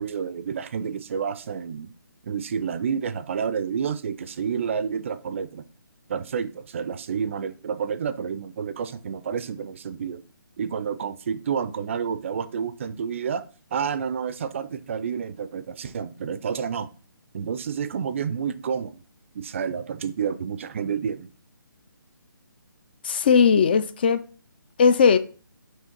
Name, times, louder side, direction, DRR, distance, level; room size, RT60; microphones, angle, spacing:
voice 1, 0.0-1.9 2.2-5.6 6.1-10.2 10.6-13.4 13.7-16.9 17.3-19.0 19.3-21.3, right 7 dB, 35° right, 0.4 m, -29 dB
voice 2, 23.0-24.2 24.8-25.2, left 6 dB, 25° left, 0.4 m, -18 dB
6.4 x 3.3 x 4.4 m
figure-of-eight pair, 145°, 12 cm